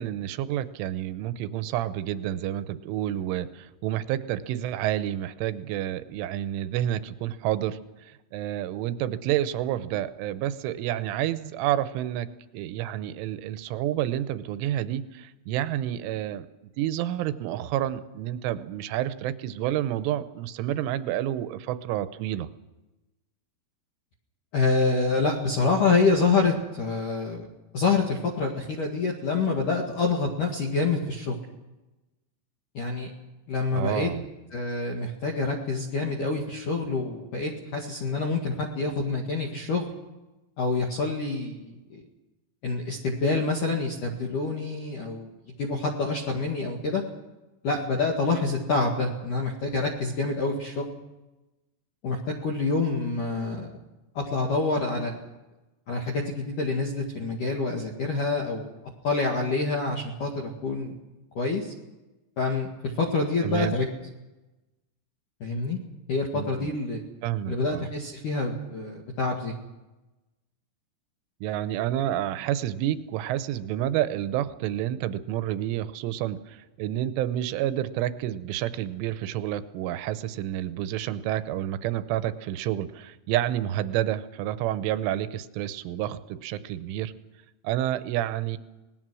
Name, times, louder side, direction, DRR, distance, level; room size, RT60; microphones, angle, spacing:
voice 1, 0.0-12.3 12.5-16.5 16.8-22.5 33.7-34.3 63.4-63.8 66.3-66.7 67.2-67.9 71.4-87.1 87.6-88.6, right 12 dB, 80° right, 12 dB, 3.1 m, -29 dB
voice 2, 24.5-27.5 27.7-31.4 32.7-33.1 33.5-34.1 34.5-39.9 40.6-42.0 42.6-45.3 45.6-47.0 47.6-50.9 52.0-53.7 54.1-55.1 55.9-58.7 59.0-61.0 61.4-61.7 62.4-62.7 63.0-63.9 65.4-65.8 66.1-67.0 67.5-69.5, left 3 dB, 55° left, 3 dB, 2.7 m, -27 dB
25.5 x 19.5 x 6.3 m, 1.1 s
omnidirectional pair, 6.0 m